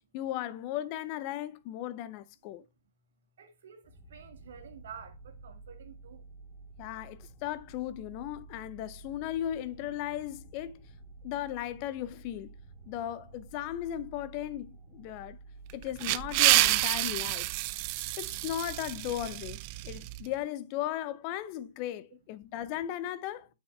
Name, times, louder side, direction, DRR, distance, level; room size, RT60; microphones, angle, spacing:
voice 1, 0.1-2.6 6.8-10.8 11.2-12.5 12.9-15.4 15.7-17.5 18.2-23.5, left 12 dB, 35° left, 0.7 m, -36 dB
voice 2, 3.4-6.3, right 7 dB, 60° right, 2.1 m, -50 dB
sound 1, 3.8-15.8, right 3 dB, ahead, 2.7 m, -51 dB
sound 2, 15.7-20.2, right 20 dB, 35° right, 0.4 m, -28 dB
8.8 x 6.7 x 3.4 m
hypercardioid pair, 125°, 0 cm